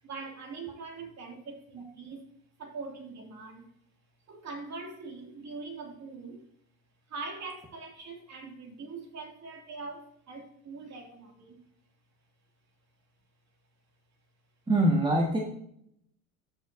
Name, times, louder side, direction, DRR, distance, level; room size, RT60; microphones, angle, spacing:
voice 1, 0.0-2.2 2.6-3.6 4.3-6.4 7.1-11.6, right 4 dB, 40° right, 1 dB, 2.6 m, -42 dB
voice 2, 14.7-15.4, right 1 dB, 10° right, -1 dB, 1.4 m, -23 dB
13.5 x 5.8 x 2.7 m, 0.71 s
supercardioid pair, 85°, 40 cm